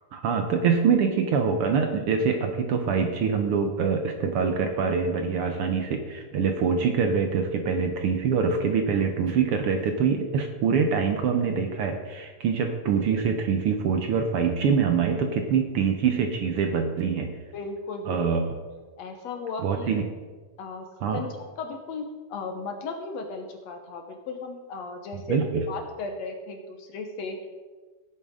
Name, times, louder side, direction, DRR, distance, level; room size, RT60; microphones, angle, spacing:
voice 1, 0.1-17.3 18.1-18.4 19.6-20.0 21.0-21.2 25.3-25.6, right 6 dB, 70° right, 5 dB, 1.3 m, -24 dB
voice 2, 17.5-18.3 19.0-19.9 20.6-20.9 21.1-21.3 21.6-25.4 25.7-27.4, left 4 dB, 65° left, 4 dB, 2.1 m, -35 dB
17.0 x 8.4 x 3.7 m, 1.4 s
omnidirectional pair, 3.5 m